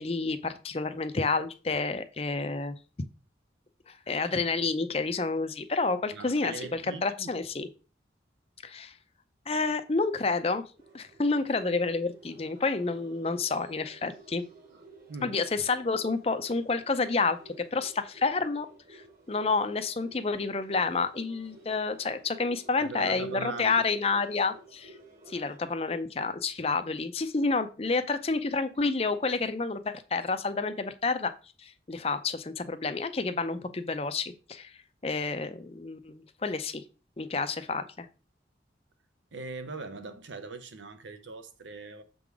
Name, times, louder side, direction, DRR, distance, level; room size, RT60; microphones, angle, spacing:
voice 1, 0.0-2.8 3.9-7.7 8.6-9.0 9.5-10.6 10.9-14.4 15.2-25.0 25.3-31.3 31.6-36.8 37.2-38.1, left 4 dB, 35° left, 0.5 m, -29 dB
voice 2, 6.1-7.3 14.7-14.8 15.1-15.4 22.8-23.8 39.3-42.0, right 3 dB, 85° right, 0.9 m, -40 dB
sound 1, 10.8-25.6, right 3 dB, 45° right, 1.9 m, -54 dB
6.9 x 3.8 x 4.7 m
head